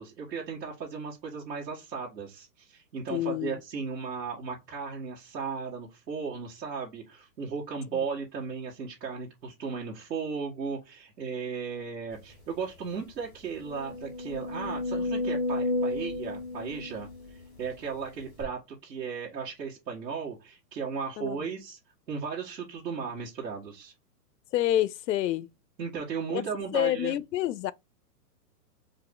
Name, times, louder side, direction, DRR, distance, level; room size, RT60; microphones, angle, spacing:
voice 1, 0.0-21.8 22.1-23.9 25.8-27.2, right 5 dB, 90° right, 1.9 m, -36 dB
voice 2, 3.1-3.6 21.2-21.4 24.5-25.5 26.3-26.4 26.7-27.7, left 13 dB, 85° left, 0.6 m, -27 dB
sound 1, 12.4-12.5 12.9-13.0 13.5-17.7 18.4-18.5, left 1 dB, ahead, 0.4 m, -32 dB
4.7 x 2.9 x 3.7 m
hypercardioid pair, 160°, 49 cm